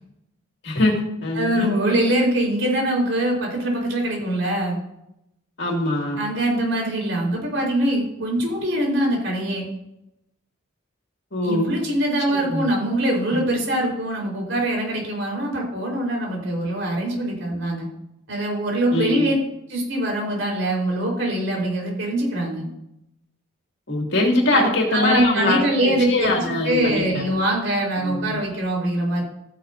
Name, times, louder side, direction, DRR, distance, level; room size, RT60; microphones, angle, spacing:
voice 1, 0.6-1.7 5.6-6.2 11.3-11.7 12.3-12.6 13.3-13.4 18.9-19.3 23.9-27.2 28.0-28.4, left 2 dB, 60° left, 0 dB, 2.4 m, -23 dB
voice 2, 1.3-4.8 6.1-9.7 11.4-17.9 18.3-19.4 19.7-22.7 24.5-29.2, right 1 dB, 75° right, -1 dB, 4.3 m, -23 dB
14.0 x 10.0 x 2.7 m, 0.81 s
head